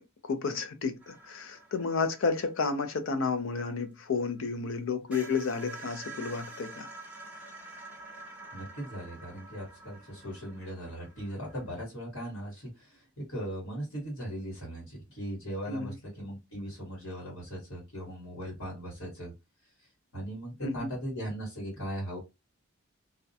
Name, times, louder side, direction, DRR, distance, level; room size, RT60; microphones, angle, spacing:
voice 1, 0.0-6.9 15.7-16.0 20.6-20.9, left 4 dB, 65° left, 0.4 m, -31 dB
sound 1, 1.0-4.4 4.7-4.8 5.1-11.8, right 2 dB, 5° right, 0.5 m, -48 dB
voice 2, 8.5-19.3 20.1-22.2, equal, 90° left, 1.3 m, -39 dB
2.3 x 2.1 x 2.6 m
head